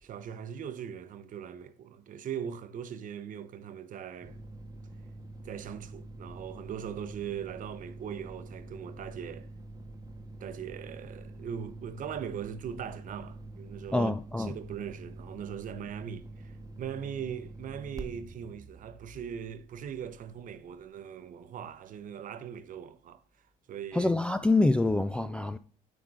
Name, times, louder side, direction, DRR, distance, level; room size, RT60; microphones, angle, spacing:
voice 1, 0.0-4.4 5.4-9.5 10.4-14.1 14.4-23.2 23.7-24.1, right 8 dB, 50° right, 0.8 m, -40 dB
sound 1, 4.2-20.6, right 2 dB, 20° right, 1.0 m, -46 dB
voice 2, 13.9-14.6 23.9-25.6, left 2 dB, 5° left, 0.3 m, -26 dB
9.5 x 3.7 x 4.7 m
cardioid pair, 110°, 17 cm